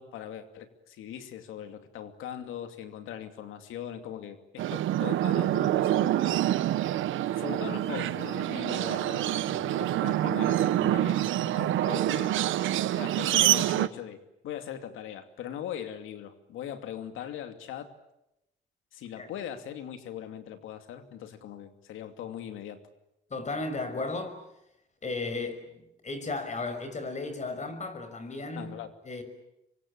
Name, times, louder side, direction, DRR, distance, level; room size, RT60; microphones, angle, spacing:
voice 1, 0.0-6.4 7.3-12.5 12.9-14.2 14.4-17.9 18.9-22.8 28.6-28.9, left 10 dB, 90° left, 2.7 m, -40 dB
sound 1, 4.6-13.9, right 13 dB, 80° right, 1.0 m, -26 dB
voice 2, 23.3-24.4 25.0-25.6 26.0-28.8 29.0-29.2, left 3 dB, 35° left, 5.9 m, -34 dB
26.5 x 24.0 x 8.7 m
cardioid pair, 90°, 20 cm